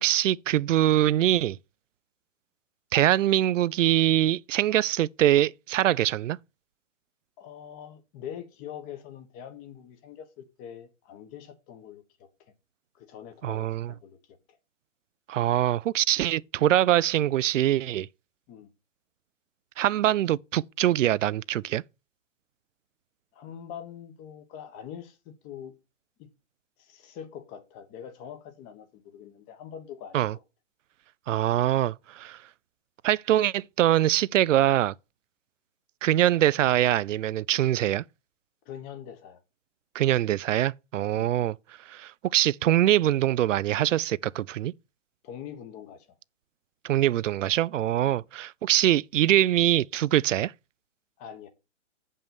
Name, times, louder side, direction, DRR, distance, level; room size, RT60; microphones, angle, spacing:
voice 1, 0.0-1.6 2.9-6.4 13.4-13.9 15.3-18.1 19.8-21.8 30.1-30.3 31.3-32.4 33.0-34.9 36.0-38.0 39.9-41.6 41.9-44.7 46.8-50.5, right 13 dB, 80° right, 0.5 m, -23 dB
voice 2, 7.4-12.3 12.9-14.2 14.5-14.6 18.5-18.7 23.3-25.7 26.2-26.3 26.8-30.4 38.6-39.4 41.1-41.3 45.2-46.1 51.2-51.5, left 9 dB, 20° left, 1.2 m, -43 dB
7.8 x 5.5 x 7.0 m
hypercardioid pair, 155°, 37 cm